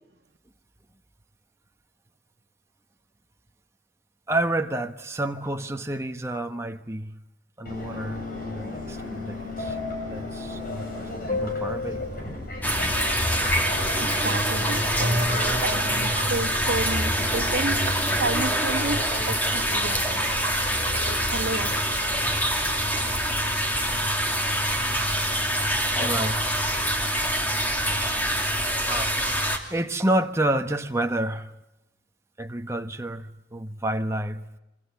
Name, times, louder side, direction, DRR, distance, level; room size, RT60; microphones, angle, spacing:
voice 1, 4.3-7.2 7.6-10.9 11.3-12.0 20.6-20.7 26.0-26.6 27.9-28.2 28.8-29.1 29.7-31.5 32.4-34.5, right 1 dB, 15° right, 1.2 m, -29 dB
Subway metro underground, 7.7-18.4, left 2 dB, 50° left, 7.0 m, -34 dB
sound 1, 12.6-29.6, equal, 10° left, 2.8 m, -25 dB
voice 2, 14.0-20.3 21.1-21.7, right 2 dB, 60° right, 1.7 m, -31 dB
27.0 x 25.5 x 7.2 m
head